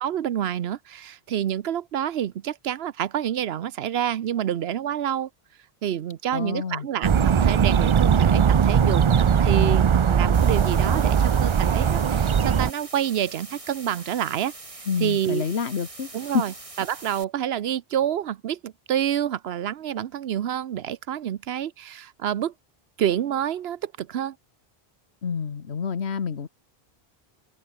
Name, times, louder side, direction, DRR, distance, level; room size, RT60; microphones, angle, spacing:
voice 1, 0.0-5.3 5.8-9.0 9.4-14.5 15.0-15.4 16.1-22.5 23.0-24.3, right 10 dB, 75° right, 0.9 m, -28 dB
voice 2, 6.3-6.9 14.9-16.4 25.2-26.5, left 6 dB, 80° left, 1.5 m, -28 dB
sound 1, 7.0-12.7, right 7 dB, 50° right, 0.3 m, -19 dB
sound 2, 10.3-17.2, right 2 dB, 30° right, 2.3 m, -43 dB
open air
omnidirectional pair, 1.1 m